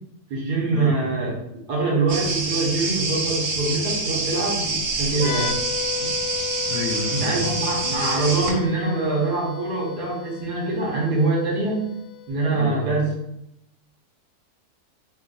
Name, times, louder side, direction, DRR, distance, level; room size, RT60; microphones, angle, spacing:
voice 1, 0.3-1.4 1.7-5.5 6.0-6.1 7.1-11.9 12.3-13.1, right 3 dB, 75° right, -3 dB, 1.7 m, -24 dB
sound 1, 2.1-8.5, right 3 dB, 60° right, 0.9 m, -27 dB
sound 2, 5.1-12.7, left 12 dB, 85° left, 1.3 m, -34 dB
voice 2, 6.7-7.5 12.5-12.9, left 2 dB, 70° left, -2 dB, 0.7 m, -30 dB
3.7 x 2.5 x 3.8 m, 0.80 s
omnidirectional pair, 1.7 m